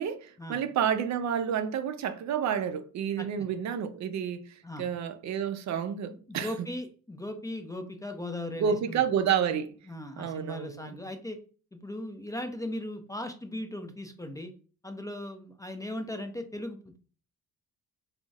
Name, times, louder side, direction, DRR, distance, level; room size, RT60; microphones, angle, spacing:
voice 1, 0.0-6.5 8.6-9.7 10.2-10.9, right 8 dB, 55° right, 0.4 m, -30 dB
voice 2, 3.2-3.5 4.6-4.9 6.1-9.0 9.9-11.4 11.7-14.5 14.8-17.0, left 1 dB, 10° left, 0.4 m, -38 dB
3.8 x 2.1 x 2.3 m
supercardioid pair, 75°, 34 cm